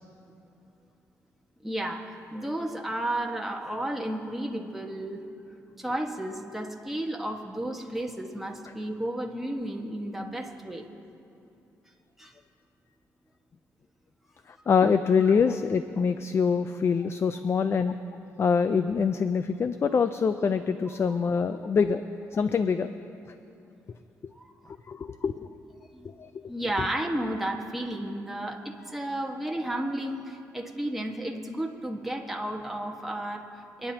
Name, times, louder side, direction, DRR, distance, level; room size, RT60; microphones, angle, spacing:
voice 1, 1.6-5.2 5.8-10.9 12.2-12.3 24.4-24.5 25.8-26.1 26.5-33.9, right 1 dB, 5° right, 0 dB, 1.4 m, -33 dB
voice 2, 14.5-18.0 18.4-22.0 22.3-22.9 24.9-25.5 26.2-26.3, left 6 dB, 45° left, 10 dB, 0.5 m, -25 dB
26.5 x 10.0 x 2.9 m, 2.7 s
cardioid pair, 70°, 6 cm